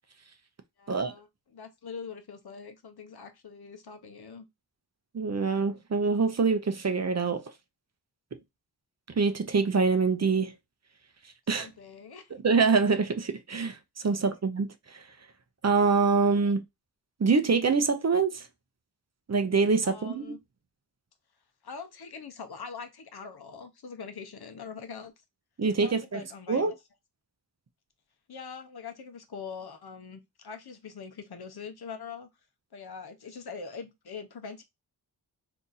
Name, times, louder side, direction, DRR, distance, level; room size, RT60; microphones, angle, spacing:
voice 1, 0.8-1.3 1.5-4.5 11.6-12.3 14.2-14.4 19.8-20.4 21.6-25.1 25.8-26.7 28.3-32.3 32.7-34.6, left 5 dB, 65° left, 0.8 m, -43 dB
voice 2, 5.1-7.4 9.2-10.5 11.5-11.7 12.4-15.1 15.6-16.6 17.2-18.5 19.3-20.3 25.6-26.2 26.5-26.7, right 4 dB, 40° right, 0.6 m, -25 dB
2.8 x 2.5 x 3.8 m
wide cardioid pair, 65°, 41 cm